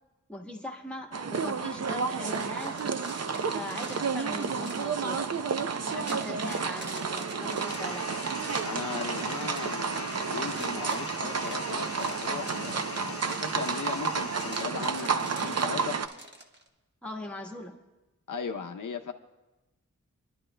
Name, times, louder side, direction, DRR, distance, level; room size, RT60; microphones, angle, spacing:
voice 1, 0.3-2.9 3.5-5.4 5.9-8.1 17.0-17.8, left 1 dB, 5° left, 1 dB, 1.3 m, -40 dB
sound 1, 1.1-16.1, right 5 dB, 55° right, 0.6 m, -31 dB
sound 2, 2.3-16.7, right 1 dB, 35° right, 1.2 m, -46 dB
sound 3, 7.6-15.3, left 6 dB, 50° left, 0.5 m, -44 dB
voice 2, 8.6-16.0 18.3-19.1, left 6 dB, 85° left, 4 dB, 0.7 m, -37 dB
27.0 x 11.5 x 2.2 m, 1.1 s
wide cardioid pair, 95°, 31 cm